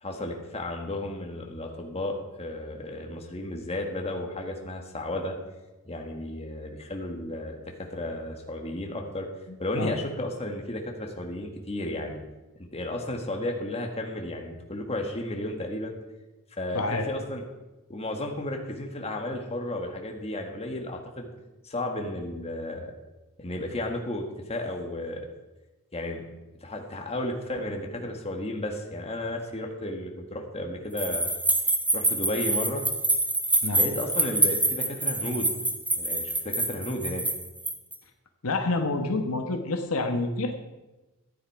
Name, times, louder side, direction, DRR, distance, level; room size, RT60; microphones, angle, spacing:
voice 1, 0.0-5.3 5.9-9.3 9.6-12.2 12.6-15.9 16.6-17.4 17.9-21.3 21.6-22.9 23.4-25.3 25.9-26.2 26.6-31.3 31.9-32.8 33.7-35.5 36.0-37.2, left 1 dB, 30° left, 2 dB, 1.7 m, -33 dB
voice 2, 16.7-17.1 33.6-33.9 38.4-40.5, left 2 dB, 70° left, 5 dB, 1.2 m, -28 dB
sound 1, 31.0-37.9, right 2 dB, 5° right, 0.9 m, -26 dB
14.0 x 9.2 x 4.8 m, 1.1 s
head